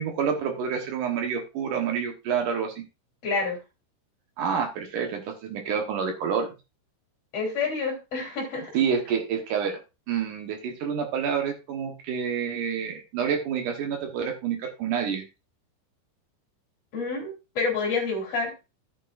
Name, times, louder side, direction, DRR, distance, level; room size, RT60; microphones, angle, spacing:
voice 1, 0.0-2.8 4.4-6.5 8.7-9.8 10.1-15.2, right 7 dB, 70° right, 3 dB, 2.0 m, -28 dB
voice 2, 3.2-3.6 7.3-8.7 16.9-18.5, left 4 dB, 35° left, 0 dB, 3.7 m, -28 dB
13.0 x 8.3 x 2.5 m, 0.27 s
omnidirectional pair, 5.4 m